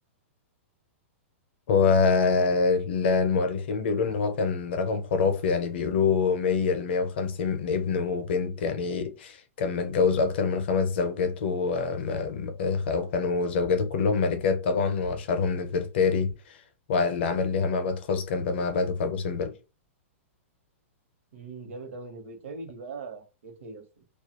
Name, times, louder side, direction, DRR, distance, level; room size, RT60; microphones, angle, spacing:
voice 1, 1.7-16.6 16.9-19.5, left 5 dB, 50° left, 0.6 m, -25 dB
voice 2, 21.3-24.0, right 3 dB, 70° right, 0.9 m, -41 dB
2.3 x 2.2 x 2.8 m
supercardioid pair, 175°, 7 cm